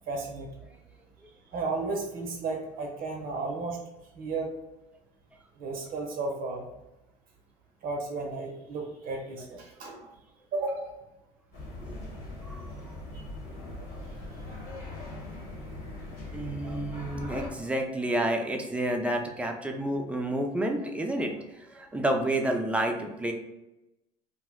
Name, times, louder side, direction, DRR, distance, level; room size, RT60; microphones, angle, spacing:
voice 1, 0.1-0.5 1.5-3.8 4.1-4.5 5.6-6.7 7.8-10.0 10.5-10.9 13.1-13.2, right 3 dB, 55° right, 2 dB, 0.6 m, -33 dB
voice 2, 9.5-9.9 11.8-11.9 12.4-12.7 16.3-23.3, right 1 dB, 5° right, 2 dB, 0.5 m, -30 dB
sound 1, 11.5-17.5, left 2 dB, 60° left, 1.1 m, -40 dB
2.6 x 2.0 x 3.6 m, 0.97 s
hypercardioid pair, 75°, 18 cm